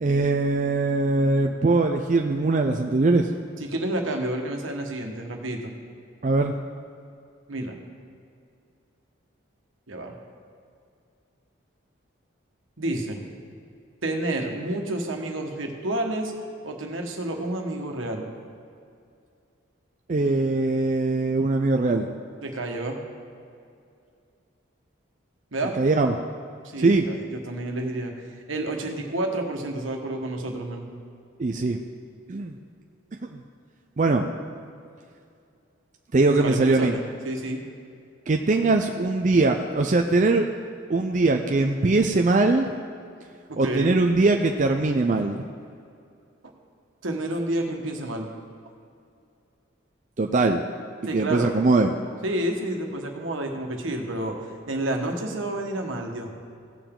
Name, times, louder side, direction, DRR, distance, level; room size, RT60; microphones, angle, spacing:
voice 1, 0.0-3.3 6.2-6.5 20.1-22.1 25.8-26.2 26.8-27.1 31.4-31.8 32.3-32.5 33.2-33.4 34.0-34.3 36.1-37.0 38.3-40.5 40.9-42.7 43.6-45.4 50.2-50.6 51.1-51.9, right 3 dB, 40° right, 3 dB, 0.4 m, -21 dB
voice 2, 3.6-5.7 7.5-7.8 9.9-10.1 12.8-13.2 14.0-16.3 16.6-18.3 22.4-23.0 25.5-25.8 26.6-30.9 36.3-37.6 43.5-43.9 47.0-48.3 51.0-51.5 52.2-54.4 54.7-56.4, right 1 dB, 80° right, 2 dB, 1.4 m, -30 dB
17.0 x 7.0 x 3.8 m, 2.4 s
head